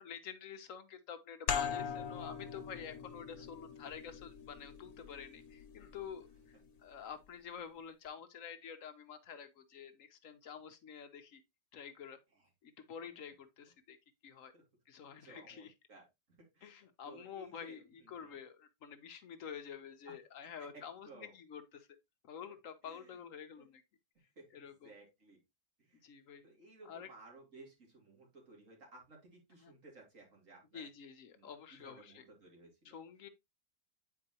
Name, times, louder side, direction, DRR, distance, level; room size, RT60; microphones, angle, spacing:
voice 1, 0.0-6.5 6.8-11.4 11.7-12.2 12.6-14.0 14.2-14.5 14.9-15.7 16.6-21.9 22.2-23.8 24.5-24.9 26.0-26.4 26.9-27.1 29.6-29.7 30.7-32.2 32.8-33.3, left 7 dB, 65° left, 1.1 m, -49 dB
sound 1, 1.5-6.8, left 7 dB, 85° left, 1.4 m, -42 dB
voice 2, 13.0-13.3 14.5-14.6 15.2-18.4 20.1-20.2 20.4-21.3 22.8-23.2 23.6-23.7 24.4-25.4 25.8-30.9 31.3-33.0, right 2 dB, 60° right, 2.8 m, -58 dB
8.7 x 4.5 x 2.8 m
omnidirectional pair, 1.5 m